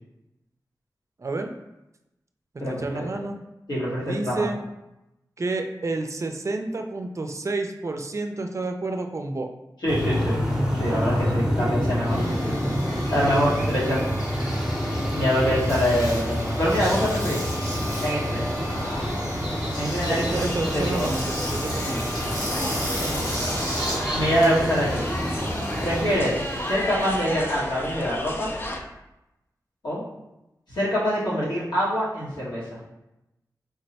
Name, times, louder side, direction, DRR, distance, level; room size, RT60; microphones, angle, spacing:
voice 1, 1.2-1.5 2.7-3.4 4.0-4.6 5.4-9.5 13.3-14.0 20.1-22.1, right 3 dB, 45° right, 5 dB, 0.4 m, -30 dB
voice 2, 2.6-3.0 3.7-4.5 9.8-10.4 10.7-12.5 13.1-14.1 15.1-17.4 18.0-18.4 19.7-21.1 22.5-23.3 24.1-25.1 25.8-28.5 29.8-30.0 30.7-32.8, equal, 85° left, -9 dB, 1.5 m, -25 dB
sound 1, 9.9-26.2, equal, 10° right, 0.7 m, -28 dB
Engine, 10.1-28.5, equal, 65° left, 1.3 m, -35 dB
sound 2, 20.3-28.8, left 1 dB, 30° left, 0.5 m, -34 dB
3.6 x 2.1 x 4.0 m, 0.93 s
wide cardioid pair, 55°, 7 cm